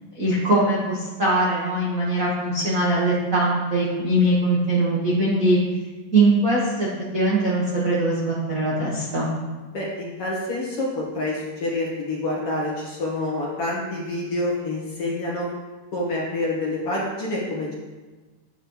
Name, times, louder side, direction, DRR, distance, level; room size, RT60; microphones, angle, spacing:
voice 1, 0.1-5.6 6.1-6.9 7.1-9.3, right 1 dB, 45° right, -7 dB, 1.1 m, -21 dB
voice 2, 9.7-15.5 15.9-17.7, left 2 dB, 50° left, -4 dB, 2.1 m, -27 dB
10.0 x 8.3 x 3.2 m, 1.3 s
omnidirectional pair, 4.0 m